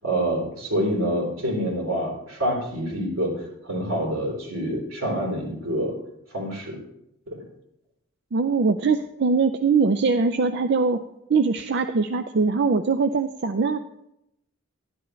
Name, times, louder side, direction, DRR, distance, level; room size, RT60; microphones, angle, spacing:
voice 1, 0.0-5.9 6.3-6.8 7.3-7.4, equal, 80° right, -2 dB, 3.8 m, -27 dB
voice 2, 8.3-11.0 11.3-13.8, right 4 dB, 55° right, 8 dB, 0.4 m, -22 dB
11.5 x 10.5 x 3.2 m, 0.80 s
head